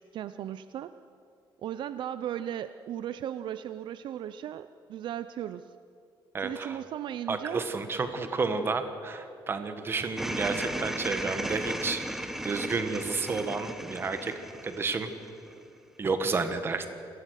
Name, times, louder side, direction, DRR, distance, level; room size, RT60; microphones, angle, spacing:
voice 1, 0.1-0.9 1.6-5.7 6.4-7.6, right 10 dB, 60° right, 12 dB, 0.5 m, -36 dB
voice 2, 6.3-6.8 7.3-12.0 12.4-14.3 14.6-15.1 16.0-16.9, right 4 dB, 25° right, 8 dB, 1.4 m, -31 dB
sound 1, 10.2-15.6, right 1 dB, 5° right, 1.2 m, -36 dB
27.0 x 18.0 x 6.5 m, 2.6 s
cardioid pair, 175°, 9 cm